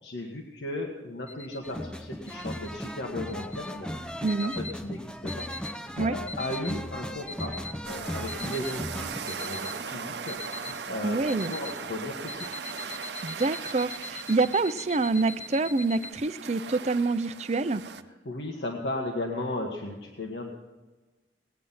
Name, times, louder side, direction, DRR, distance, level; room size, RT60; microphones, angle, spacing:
voice 1, 0.0-4.1 4.4-5.5 5.7-7.6 7.9-12.6 18.2-20.5, left 1 dB, 75° left, 0 dB, 1.5 m, -36 dB
sound 1, 1.3-1.7 2.3-2.7 3.3-3.7 4.3-4.8 5.3-5.8 6.3-6.8 7.3-7.8 8.3-8.8 9.3-9.8 10.3-10.8 11.3-11.8 12.3-16.1, left 2 dB, 40° left, 1.1 m, -41 dB
sound 2, 1.6-9.2, equal, 5° left, 0.6 m, -37 dB
voice 2, 4.2-4.5 6.0-6.1 11.0-11.5 13.2-17.8, right 3 dB, 40° right, 13 dB, 0.5 m, -26 dB
sound 3, 7.8-18.0, right 6 dB, 75° right, 0.8 m, -39 dB
19.0 x 9.4 x 5.7 m, 1.2 s
head